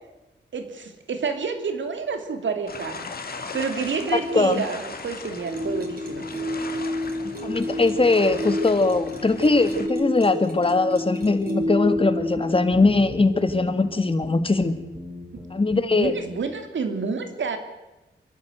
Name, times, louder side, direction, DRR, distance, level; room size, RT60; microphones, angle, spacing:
voice 1, 0.5-3.1 3.4-6.3 15.9-17.6, right 5 dB, 85° right, 6 dB, 2.9 m, -29 dB
sound 1, 2.7-9.9, left 4 dB, 55° left, 2.3 m, -38 dB
voice 2, 4.1-4.6 7.4-14.8 15.5-16.1, left 3 dB, 30° left, 10 dB, 1.8 m, -21 dB
sound 2, 5.5-12.7, left 1 dB, 50° right, 4.7 m, -29 dB
sound 3, 11.2-15.8 16.0-16.3, left 1 dB, 5° right, 4.6 m, -39 dB
27.0 x 11.5 x 9.3 m, 1.1 s
wide cardioid pair, 100°, 19 cm